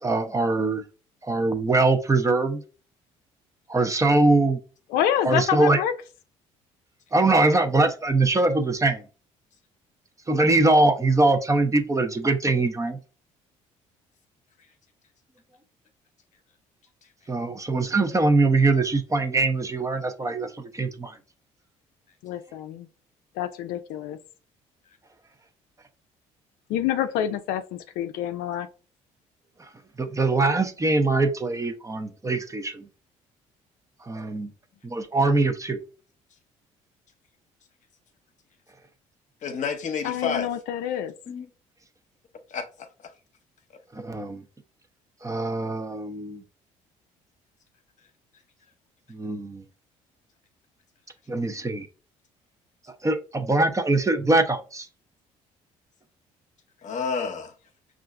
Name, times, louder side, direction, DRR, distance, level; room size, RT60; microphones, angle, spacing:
voice 1, 0.0-0.8 1.2-2.6 3.7-4.6 5.2-5.8 7.1-9.0 10.3-13.0 17.3-21.2 29.6-29.7 30.0-32.9 34.0-34.5 34.8-35.8 43.9-44.4 45.2-46.4 49.1-49.6 51.3-51.9 53.0-54.9, right 2 dB, 20° right, 0.7 m, -22 dB
voice 2, 4.9-5.9 22.2-22.9 23.4-24.2 26.7-28.7 40.0-41.1, left 10 dB, 75° left, 0.4 m, -27 dB
voice 3, 39.4-40.5 41.3-41.5 42.5-43.1 56.8-57.5, left 5 dB, 55° left, 0.8 m, -30 dB
5.5 x 2.5 x 2.5 m
supercardioid pair, 65°, 15 cm